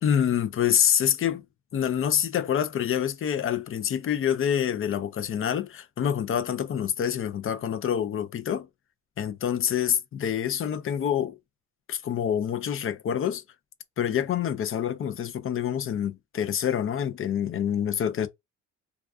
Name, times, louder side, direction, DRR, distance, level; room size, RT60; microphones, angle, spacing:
voice 1, 0.0-1.4 1.7-8.7 9.2-11.4 11.9-13.4 14.0-18.3, left 9 dB, 45° left, 0.5 m, -26 dB
2.3 x 2.3 x 2.3 m
cardioid pair, 90°, 30 cm